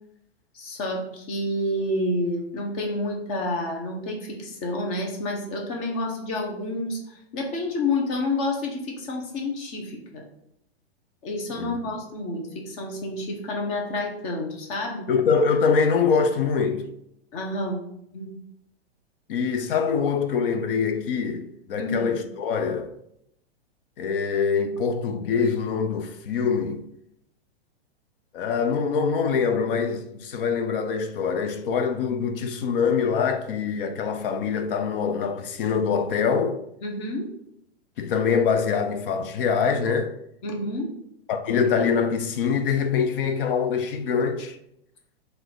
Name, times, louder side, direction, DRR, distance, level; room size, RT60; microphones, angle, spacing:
voice 1, 0.5-10.2 11.2-15.1 17.3-17.8 18.1-18.3 21.8-22.1 36.8-37.3 40.4-40.9, left 2 dB, 35° left, 1.0 m, -29 dB
voice 2, 15.1-16.9 19.3-22.9 24.0-26.8 28.3-36.6 38.0-40.1 41.3-44.6, left 6 dB, 55° left, 0.5 m, -24 dB
3.9 x 2.7 x 4.5 m
hypercardioid pair, 145°, 33 cm